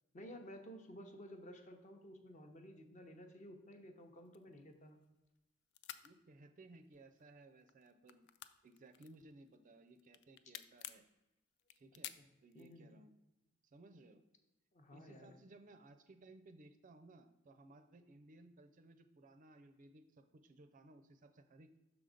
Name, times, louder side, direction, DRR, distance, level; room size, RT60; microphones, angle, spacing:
voice 1, 0.1-5.0 12.2-12.3 12.5-12.9 14.7-15.3, equal, 35° left, 5 dB, 0.7 m, -54 dB
sound 1, 4.2-5.4 5.7-6.1 6.8-7.3 7.6-9.5 9.9-11.1 11.6-12.8, left 12 dB, 55° left, 0.3 m, -51 dB
voice 2, 6.0-8.3 8.6-11.0 11.8-12.1 12.4-13.1 13.6-14.2 14.9-21.8, right 2 dB, 40° right, 8 dB, 0.4 m, -60 dB
6.1 x 3.8 x 5.0 m, 1.0 s
head